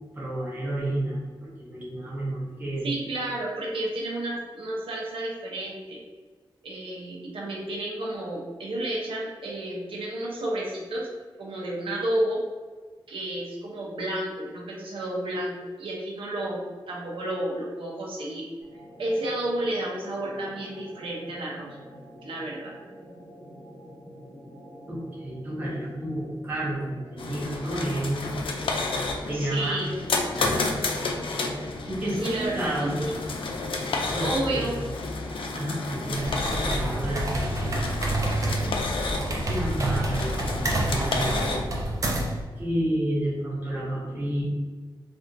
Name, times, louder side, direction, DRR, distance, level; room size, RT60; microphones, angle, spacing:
voice 1, 0.1-1.2 1.6-2.9 24.9-28.2 29.3-29.8 30.4-30.6 31.9-32.9 34.1-34.9 35.5-38.7 39.1-41.6 42.6-44.4, right 1 dB, 20° right, -6 dB, 0.9 m, -31 dB
voice 2, 2.8-6.0 6.6-11.1 11.4-12.4 13.1-16.6 16.9-18.5 19.0-21.7 22.2-22.7 29.3-30.0 32.2-33.1 34.2-34.8, right 1 dB, 80° right, -4 dB, 0.8 m, -31 dB
sound 1, 18.6-33.7, equal, 20° left, 0.8 m, -47 dB
sound 2, 27.2-41.6, left 3 dB, 75° left, 0.4 m, -31 dB
sound 3, 36.1-42.4, right 1 dB, 40° right, 0.5 m, -28 dB
3.4 x 2.6 x 2.6 m, 1.4 s
wide cardioid pair, 165°, 9 cm